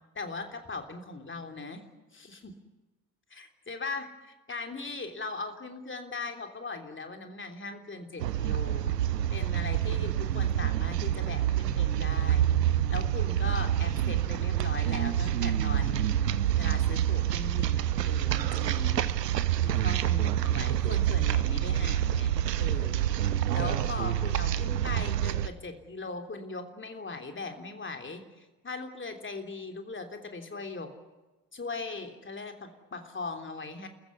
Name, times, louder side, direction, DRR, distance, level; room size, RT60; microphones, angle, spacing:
voice 1, 0.1-1.9 2.1-2.5 3.3-9.0 9.3-16.3 16.6-19.1 19.6-30.9 31.5-33.9, left 3 dB, 25° left, 5 dB, 3.4 m, -39 dB
sound 1, 8.2-25.5, right 11 dB, 80° right, 0.8 m, -27 dB
30.0 x 15.0 x 9.7 m, 1.1 s
figure-of-eight pair, 50°, 48 cm